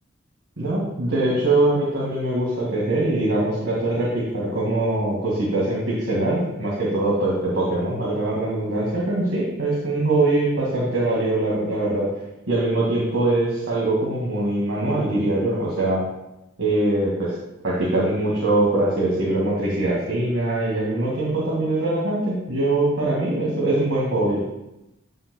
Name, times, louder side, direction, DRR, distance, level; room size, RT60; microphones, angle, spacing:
voice 1, 0.6-12.1 12.5-16.0 16.6-17.3 17.6-24.4, right 2 dB, 80° right, -6 dB, 2.1 m, -22 dB
14.5 x 5.7 x 2.3 m, 0.91 s
head